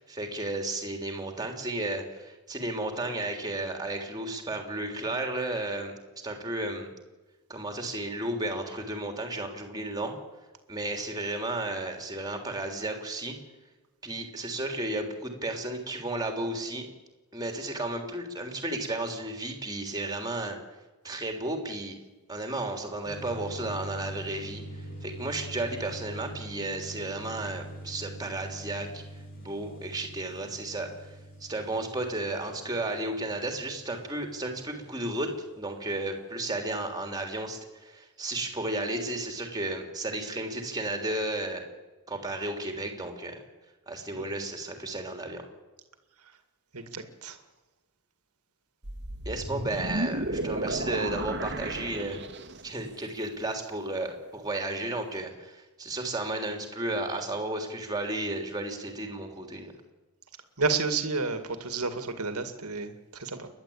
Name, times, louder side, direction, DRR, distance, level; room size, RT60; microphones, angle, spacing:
voice 1, 0.1-5.9 6.2-6.9 7.5-10.2 10.7-13.4 14.0-16.9 17.3-20.6 21.0-22.0 22.3-24.6 25.0-29.0 29.4-30.9 31.4-35.3 35.6-41.6 42.1-43.4 43.9-45.4 49.2-52.2 52.6-59.7, right 2 dB, 20° right, 4 dB, 3.3 m, -33 dB
sound 1, 23.0-35.5, right 1 dB, 40° left, 3.8 m, -44 dB
voice 2, 46.7-47.4 60.6-63.5, right 4 dB, 90° right, 8 dB, 2.2 m, -31 dB
sound 2, 48.8-52.8, right 1 dB, 55° right, 1.8 m, -33 dB
29.5 x 11.5 x 8.8 m, 1.2 s
head